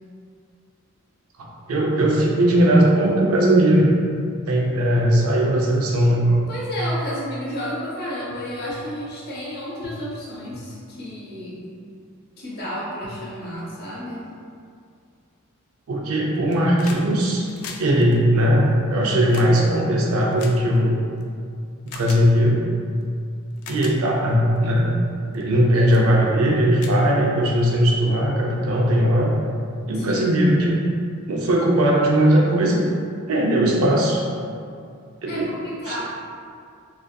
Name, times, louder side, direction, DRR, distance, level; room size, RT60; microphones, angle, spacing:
voice 1, 1.4-3.9 4.5-6.2 15.9-17.5 17.8-21.0 21.8-22.6 23.7-24.9 25.3-29.3 29.9-30.8 31.3-32.9 33.3-34.2 35.2-35.5 35.9-36.0, right 1 dB, 80° right, -2 dB, 0.4 m, -19 dB
voice 2, 6.3-11.6 12.4-14.3 25.7-26.0 29.9-30.3 35.3-36.0, equal, 50° left, -6 dB, 0.6 m, -32 dB
sound 1, 16.3-17.1 17.3-21.2 21.9-22.2 23.0-23.1 23.5-24.0 24.6-24.8 25.3-25.6 25.9-26.1 26.4-26.5 26.8-27.7 28.9-29.0, left 5 dB, 85° left, 0.3 m, -40 dB
2.5 x 2.4 x 2.2 m, 2.3 s
head